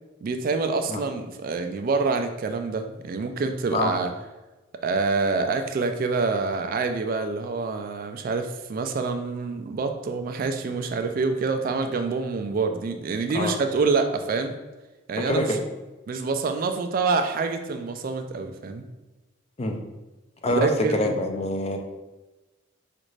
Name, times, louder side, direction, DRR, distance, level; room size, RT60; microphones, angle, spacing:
voice 1, 0.2-4.1 4.8-14.5 15.1-15.6 16.1-18.8 20.5-21.1, right 4 dB, 45° right, 7 dB, 0.3 m, -26 dB
voice 2, 15.3-15.6 19.6-19.8 20.4-21.8, left 1 dB, 30° left, 3 dB, 0.4 m, -25 dB
5.1 x 2.5 x 3.1 m, 1.1 s
head